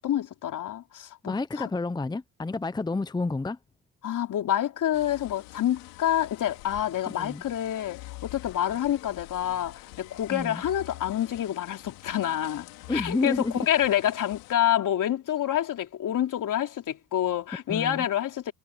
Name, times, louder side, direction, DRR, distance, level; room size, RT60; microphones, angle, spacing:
voice 1, 0.0-1.7 4.0-18.5, left 11 dB, 60° left, 3.5 m, -28 dB
voice 2, 1.2-3.6 7.1-7.4 10.3-10.6 12.9-13.7 17.7-18.0, left 3 dB, 10° left, 0.7 m, -30 dB
sound 1, 4.9-14.5, left 20 dB, 90° left, 3.7 m, -46 dB
supercardioid pair, 70°, 35 cm